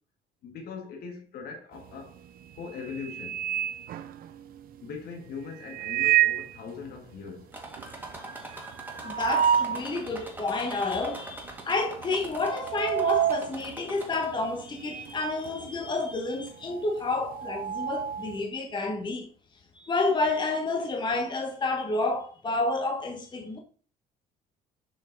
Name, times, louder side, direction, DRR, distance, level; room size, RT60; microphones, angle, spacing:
voice 1, 0.4-2.2 2.6-3.4 4.8-7.5, left 5 dB, 70° left, 1.8 m, -40 dB
sound 1, 1.8-2.2 2.6-4.6 5.6-6.6 7.0-7.1 7.3-7.4 7.8-9.9 10.4-10.5 11.3-11.6 11.9-15.2 15.5-18.4, right 10 dB, 60° right, 0.7 m, -29 dB
sound 2, 7.5-14.6 15.0-15.7 16.5-16.6 17.0-17.1, right 2 dB, 10° right, 1.9 m, -43 dB
voice 2, 9.0-19.3 19.7-23.6, left 3 dB, 25° left, 1.2 m, -30 dB
7.0 x 5.6 x 3.9 m
cardioid pair, 110°, 17 cm